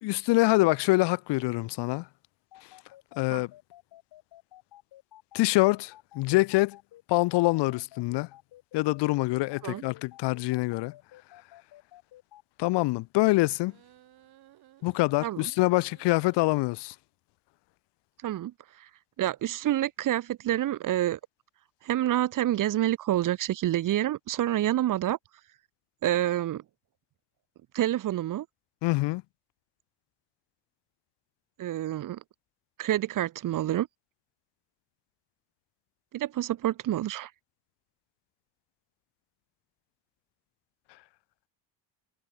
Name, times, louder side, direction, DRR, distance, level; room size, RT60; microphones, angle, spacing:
voice 1, 0.0-2.1 3.2-3.5 5.3-6.8 7.1-8.3 8.7-10.9 12.6-13.7 14.8-16.9 28.8-29.2, left 21 dB, 90° left, 1.1 m, -25 dB
sound 1, 2.5-12.4, left 14 dB, 65° left, 7.0 m, -52 dB
sound 2, 13.6-16.6, right 14 dB, 65° right, 4.8 m, -59 dB
voice 2, 18.2-18.5 19.2-21.2 21.8-25.2 26.0-26.6 27.7-28.5 31.6-32.2 32.8-33.9 36.1-37.3, right 13 dB, 50° right, 1.2 m, -28 dB
cardioid pair, 140°, 40 cm